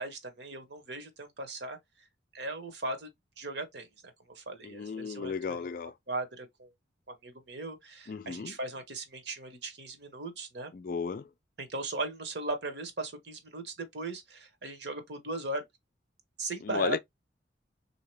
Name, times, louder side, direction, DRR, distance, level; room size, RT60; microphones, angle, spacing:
voice 1, 0.0-1.8 2.3-3.1 3.4-3.9 4.3-5.7 6.1-6.7 7.2-10.7 11.6-15.6 16.4-17.0, right 2 dB, 60° right, 1.0 m, -38 dB
voice 2, 4.6-5.9 8.1-8.5 10.7-11.3 16.6-17.0, left 5 dB, 45° left, 0.3 m, -34 dB
3.7 x 2.8 x 3.1 m
head